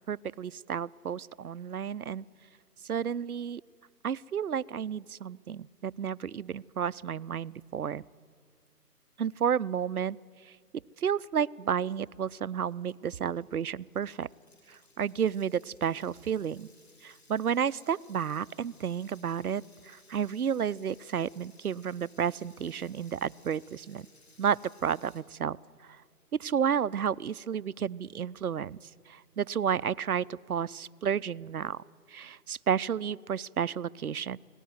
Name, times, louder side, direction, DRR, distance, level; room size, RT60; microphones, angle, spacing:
voice 1, 0.1-2.3 2.9-3.6 4.0-8.0 9.2-10.2 11.0-14.3 15.0-16.7 17.0-24.1 24.4-25.6 26.4-28.8 29.1-31.8 32.1-34.4, right 8 dB, 65° right, 19 dB, 0.5 m, -31 dB
sound 1, 12.1-12.2 12.5-25.2, left 3 dB, 40° left, 3.6 m, -61 dB
25.5 x 18.0 x 9.4 m, 2.1 s
figure-of-eight pair, 180°, 48 cm